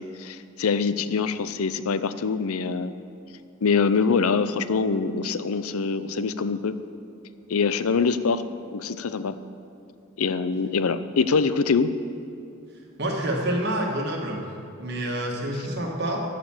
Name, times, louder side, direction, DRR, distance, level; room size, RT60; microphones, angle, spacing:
voice 1, 0.0-2.9 3.6-6.7 7.5-8.4 8.7-9.3 10.2-11.9, left 5 dB, 90° left, 12 dB, 0.5 m, -24 dB
voice 2, 13.0-14.4 14.8-16.2, right 1 dB, 50° right, 1 dB, 1.6 m, -27 dB
13.5 x 5.1 x 7.3 m, 2.8 s
head